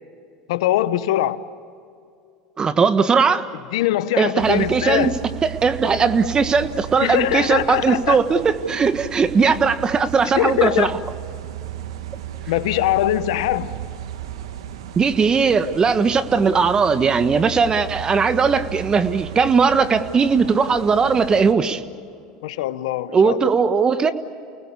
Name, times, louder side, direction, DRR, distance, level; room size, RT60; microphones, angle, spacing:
voice 1, 0.5-1.4 3.7-5.2 7.0-8.2 10.2-10.9 12.5-13.8 22.4-23.4, left 14 dB, 80° left, 1.0 m, -22 dB
voice 2, 2.6-3.5 4.2-5.1 5.4-10.9 14.9-21.8 23.1-24.1, right 5 dB, 30° right, 1.5 m, -18 dB
sound 1, 4.4-21.5, right 11 dB, 90° right, 1.5 m, -35 dB
29.5 x 20.0 x 8.5 m
supercardioid pair, 95°, 3 cm